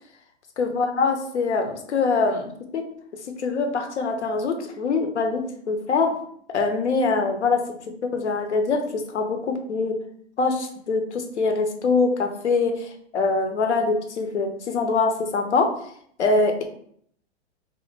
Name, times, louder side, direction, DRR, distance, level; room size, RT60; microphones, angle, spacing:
voice 1, 0.6-2.8 3.3-6.2 6.5-10.0 10.4-15.7 16.2-16.6, left 4 dB, 85° left, 5 dB, 0.6 m, -24 dB
2.4 x 2.2 x 3.6 m, 0.64 s
hypercardioid pair, 105°, 34 cm